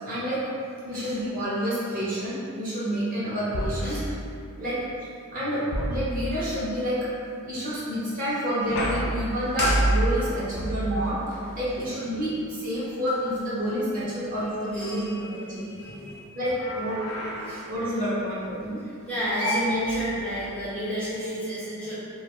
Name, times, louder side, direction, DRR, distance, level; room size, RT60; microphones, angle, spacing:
voice 1, 0.1-0.5 0.8-4.0 4.6-4.8 5.3-7.1 7.4-11.2 11.6-15.7 16.3-17.0 17.7-18.8 19.4-19.5, equal, 40° right, -9 dB, 0.7 m, -28 dB
sound 1, 3.5-4.6 5.7-6.9 8.6-12.2 13.1-13.2 16.4-17.7 19.1-19.2 19.4-20.6, equal, 75° left, 0.4 m, -30 dB
voice 2, 14.7-16.2 17.5-17.6 19.1-22.0, equal, 5° left, -11 dB, 0.4 m, -31 dB
2.3 x 2.2 x 2.9 m, 2.4 s
head